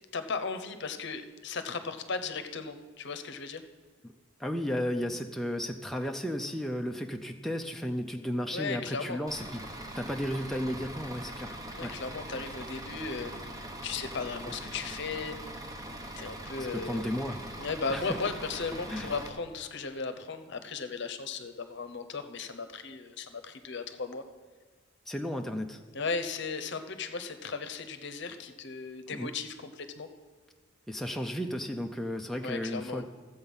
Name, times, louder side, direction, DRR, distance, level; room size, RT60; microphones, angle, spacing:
voice 1, 0.1-3.6 8.5-9.2 11.7-15.4 16.2-17.0 17.6-24.2 25.9-30.1 32.4-33.0, left 4 dB, 60° left, 9 dB, 0.8 m, -36 dB
voice 2, 4.4-9.6 10.0-11.5 11.8-11.9 16.7-17.4 17.9-18.2 18.9-19.1 25.1-25.8 29.1-29.3 30.9-33.0, equal, ahead, 2 dB, 0.4 m, -34 dB
Bus / Idling, 9.3-19.3, right 1 dB, 20° right, 0.9 m, -42 dB
13.0 x 7.9 x 5.5 m, 1.5 s
head